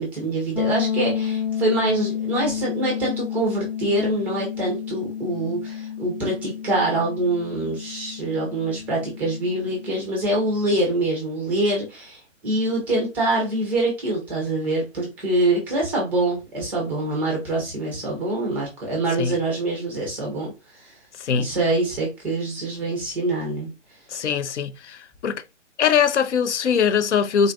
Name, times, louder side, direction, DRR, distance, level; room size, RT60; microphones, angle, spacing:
voice 1, 0.0-21.0 21.4-23.7, right 2 dB, 5° right, 0.4 m, -25 dB
sound 1, 0.6-10.3, left 8 dB, 90° left, 1.2 m, -30 dB
voice 2, 21.2-21.5 24.1-25.4 25.8-27.5, left 7 dB, 70° left, 0.5 m, -22 dB
3.7 x 2.4 x 2.3 m
figure-of-eight pair, 130°, 37 cm